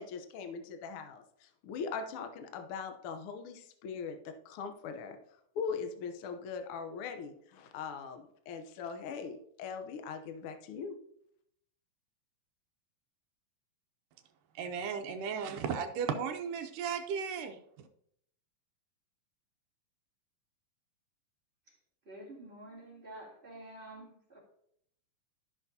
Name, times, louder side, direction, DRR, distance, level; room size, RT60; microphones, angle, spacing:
voice 1, 0.0-4.2 4.4-5.2 5.5-10.9, left 5 dB, 85° left, 1.2 m, -40 dB
voice 2, 14.6-17.9, right 6 dB, 80° right, 2.4 m, -35 dB
voice 3, 22.0-24.4, right 1 dB, 20° right, 3.3 m, -49 dB
15.0 x 6.0 x 2.8 m
omnidirectional pair, 3.8 m